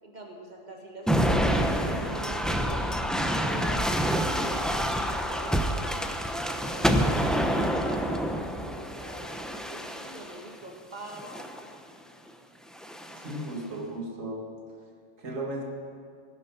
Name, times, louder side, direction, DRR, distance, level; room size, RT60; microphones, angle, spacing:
voice 1, 0.0-3.9 4.2-6.0 6.4-8.3 8.7-11.5, right 1 dB, 35° right, 0 dB, 2.1 m, -43 dB
sound 1, 1.1-10.4 11.1-11.7 12.8-13.4, equal, ahead, 0.5 m, -27 dB
voice 2, 13.2-14.4 15.2-15.6, right 1 dB, 80° right, -1 dB, 2.3 m, -35 dB
16.5 x 11.0 x 5.9 m, 2.3 s
omnidirectional pair, 1.3 m